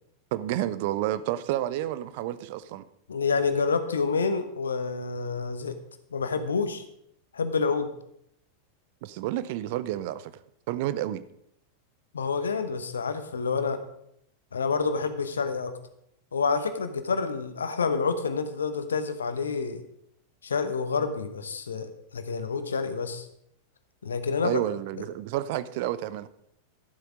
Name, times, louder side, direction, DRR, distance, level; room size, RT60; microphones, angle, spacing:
voice 1, 0.3-2.8 9.0-10.3 10.7-11.2 24.4-26.3, right 13 dB, 50° right, 0.6 m, -30 dB
voice 2, 3.1-5.8 6.1-6.8 7.3-7.9 12.1-13.8 14.5-15.7 16.3-19.8 20.4-23.3 24.0-24.6, left 5 dB, 70° left, 0.9 m, -28 dB
12.0 x 7.9 x 5.0 m
figure-of-eight pair, 90°, 0 cm